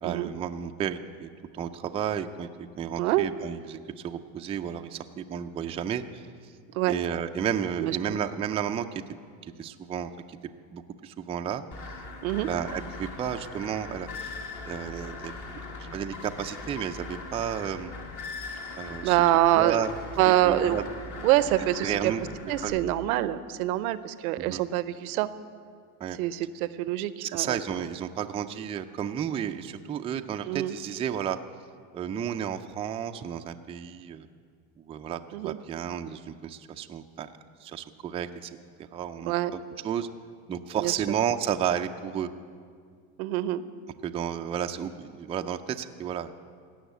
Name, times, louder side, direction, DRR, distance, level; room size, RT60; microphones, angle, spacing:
voice 1, 0.0-6.5 6.9-9.0 9.4-10.4 10.7-11.6 12.4-14.1 14.7-15.3 15.8-17.9 18.8-19.2 19.6-19.9 20.3-20.8 21.8-22.2 22.6-22.7 24.4-24.6 26.0-26.2 27.2-31.4 31.9-34.3 34.8-37.3 37.6-38.5 38.8-40.1 40.5-42.3 44.0-46.4, right 8 dB, 15° right, 6 dB, 0.3 m, -32 dB
voice 2, 3.0-3.3 6.7-6.9 7.8-8.2 12.2-12.5 19.0-19.9 20.2-20.8 21.2-22.1 22.5-25.3 26.2-27.6 30.5-30.7 35.3-35.6 39.3-39.5 40.7-41.2 43.2-43.6, right 14 dB, 85° right, 15 dB, 0.7 m, -25 dB
sound 1, 11.7-22.7, left 3 dB, 45° left, 1.9 m, -40 dB
16.5 x 6.4 x 8.1 m, 2.1 s
supercardioid pair, 110°, 42 cm